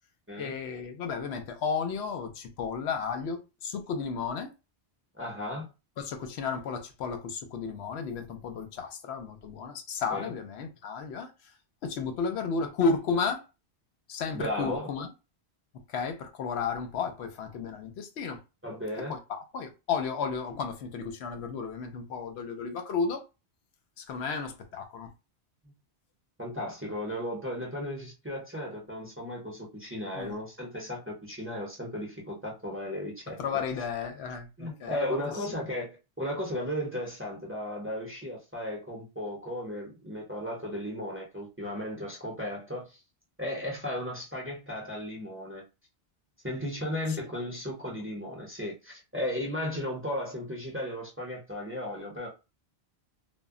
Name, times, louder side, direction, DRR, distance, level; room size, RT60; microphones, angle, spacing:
voice 1, 0.4-4.5 6.0-11.3 11.8-13.4 14.1-15.1 15.9-18.4 19.1-23.2 24.0-25.1 30.1-30.3 33.4-35.2, left 5 dB, 80° left, 0.8 m, -33 dB
voice 2, 5.1-5.7 10.1-10.3 14.3-14.9 18.6-19.1 25.6-25.7 26.4-33.4 34.6-43.0 43.4-45.6 46.4-52.3, left 1 dB, 15° right, 0.6 m, -35 dB
2.1 x 2.1 x 3.6 m
omnidirectional pair, 1.1 m